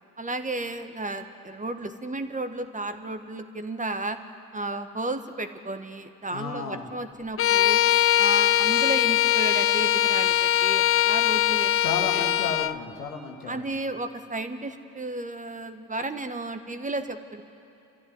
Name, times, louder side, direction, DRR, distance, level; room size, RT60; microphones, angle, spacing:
voice 1, 0.2-4.2 4.5-7.8 8.2-11.7 12.1-12.3 13.5-17.4, right 2 dB, 15° right, 8 dB, 1.6 m, -33 dB
voice 2, 6.3-6.9 11.8-13.6, left 4 dB, 85° left, 3 dB, 2.1 m, -33 dB
Bowed string instrument, 7.4-12.8, left 12 dB, 30° left, 0.5 m, -21 dB
28.0 x 14.0 x 9.7 m, 2.8 s
hypercardioid pair, 60°, 44 cm